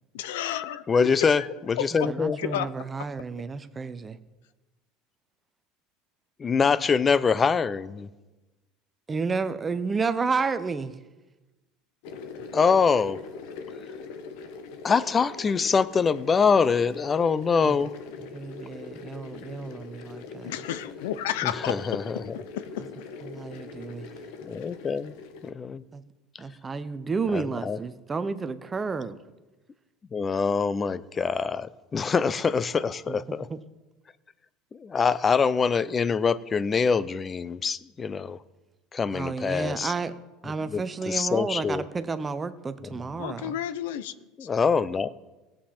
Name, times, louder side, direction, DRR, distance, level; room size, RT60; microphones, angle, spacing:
voice 1, 0.1-1.1 1.4-1.5 1.8-1.9 2.4-2.7 20.4-21.7 43.2-44.1 44.4-44.5, left 11 dB, 90° left, 0.5 m, -31 dB
voice 2, 0.9-2.4 6.4-8.1 12.5-13.2 14.8-17.9 21.4-22.2 24.5-25.1 25.4-25.8 27.3-27.8 30.1-33.5 34.7-38.4 38.9-39.9 40.7-41.8 44.4-45.1, left 5 dB, 25° left, 0.5 m, -24 dB
voice 3, 2.1-4.2 9.1-10.9 17.6-17.8 18.3-20.6 23.2-24.1 25.9-26.0 26.4-29.2 33.1-33.6 39.1-40.1 40.4-43.5, right 4 dB, 20° right, 0.7 m, -31 dB
sound 1, 12.0-25.5, left 4 dB, 75° left, 1.0 m, -42 dB
17.0 x 7.6 x 4.3 m
supercardioid pair, 125°, 0 cm